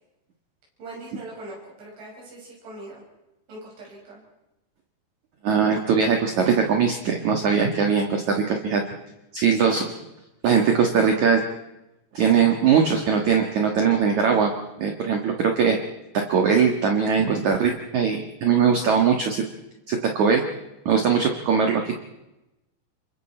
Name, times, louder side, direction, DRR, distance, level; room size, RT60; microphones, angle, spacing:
voice 1, 0.8-3.0 3.5-4.2 9.5-9.8, right 1 dB, 80° right, -4 dB, 8.4 m, -40 dB
voice 2, 5.4-8.8 9.3-9.8 10.4-11.4 12.1-14.5 14.8-15.8 16.1-19.4 19.9-20.4 20.9-22.0, right 6 dB, 55° right, 3 dB, 2.3 m, -21 dB
28.5 x 24.0 x 4.4 m, 0.95 s
omnidirectional pair, 5.2 m